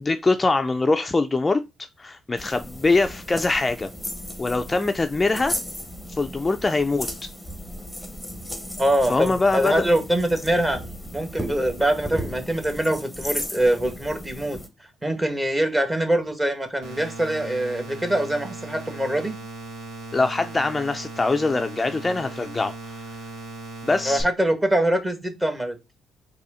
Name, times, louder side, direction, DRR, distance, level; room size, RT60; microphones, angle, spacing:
voice 1, 0.0-1.6 2.0-3.9 4.4-5.6 6.1-7.1 9.1-9.9 20.1-23.0 23.8-24.2, left 3 dB, 20° left, 0.4 m, -23 dB
sound 1, 2.4-14.7, equal, ahead, 1.0 m, -35 dB
voice 2, 8.8-10.8 11.1-14.6 15.0-19.4 24.0-25.8, right 1 dB, 15° right, 1.2 m, -23 dB
sound 2, 16.8-24.2, right 2 dB, 85° right, 1.6 m, -38 dB
4.1 x 2.7 x 4.9 m
cardioid pair, 90°, 0 cm